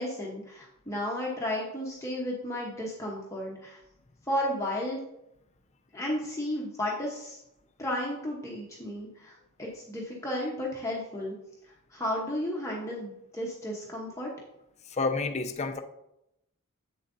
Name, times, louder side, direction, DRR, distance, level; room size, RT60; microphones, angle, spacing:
voice 1, 0.0-3.8 4.3-5.0 5.9-7.4 7.8-11.3 11.9-14.3, left 1 dB, 15° left, 1.0 m, -33 dB
voice 2, 14.9-15.8, left 3 dB, 30° left, 0.5 m, -29 dB
8.2 x 7.2 x 2.7 m
head